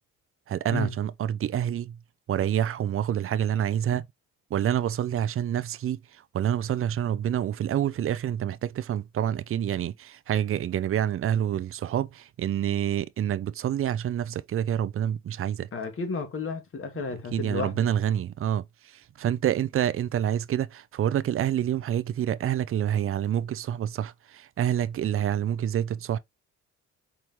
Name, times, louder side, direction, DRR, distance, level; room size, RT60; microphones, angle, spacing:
voice 1, 0.5-1.9 2.3-4.0 4.5-6.0 6.3-15.7 17.3-18.6 19.2-26.2, right 10 dB, 45° right, 0.5 m, -27 dB
voice 2, 15.7-17.9, left 4 dB, 45° left, 1.8 m, -32 dB
4.6 x 3.7 x 2.9 m
cardioid pair, 90°, 30 cm